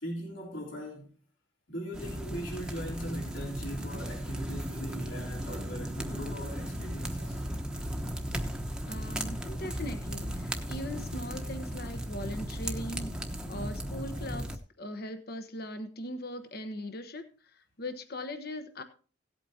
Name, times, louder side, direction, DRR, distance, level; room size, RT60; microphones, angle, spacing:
voice 1, 0.0-1.1 1.7-7.5, equal, 75° left, 3.6 m, -40 dB
sound 1, 1.9-14.6, equal, 5° right, 1.0 m, -36 dB
voice 2, 8.8-13.1 13.5-17.2 17.5-18.8, left 1 dB, 55° left, 1.1 m, -40 dB
17.5 x 8.4 x 2.9 m
head